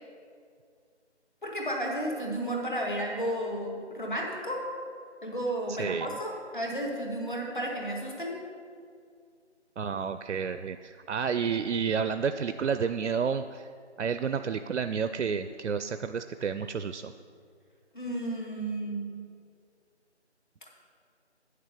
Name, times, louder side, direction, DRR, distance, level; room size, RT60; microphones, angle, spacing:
voice 1, 1.4-4.7 5.2-8.4 17.9-19.2, right 1 dB, 45° left, -1 dB, 1.8 m, -33 dB
voice 2, 9.8-13.7 14.0-17.1, right 6 dB, 90° right, 10 dB, 0.5 m, -30 dB
9.0 x 6.6 x 6.7 m, 2.2 s
figure-of-eight pair, 180°, 35 cm